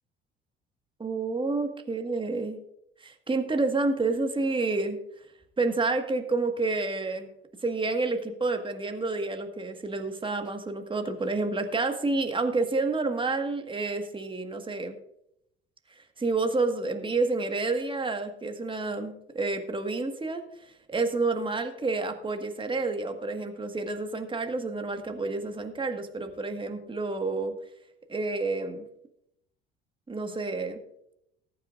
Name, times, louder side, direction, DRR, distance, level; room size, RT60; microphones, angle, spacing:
voice 1, 1.0-2.6 3.0-5.0 5.6-7.3 7.6-15.0 16.2-27.5 28.1-28.9 30.1-30.8, right 3 dB, 15° right, 6 dB, 1.7 m, -29 dB
20.0 x 9.4 x 2.6 m, 0.77 s
figure-of-eight pair, 55°, 30 cm